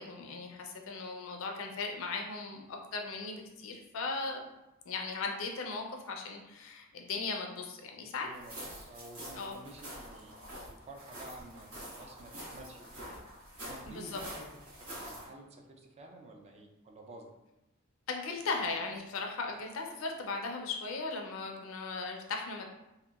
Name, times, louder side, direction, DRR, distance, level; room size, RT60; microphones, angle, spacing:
voice 1, 0.0-4.4 4.9-8.3 9.3-9.5 13.9-14.2 18.1-22.7, left 4 dB, 70° left, 2 dB, 0.4 m, -37 dB
voice 2, 8.2-13.2 13.6-14.4 14.8-17.3, right 1 dB, 30° right, 1 dB, 0.3 m, -51 dB
sound 1, 8.3-15.3, equal, 85° right, 1.1 m, -46 dB
2.8 x 2.2 x 2.3 m, 0.95 s
head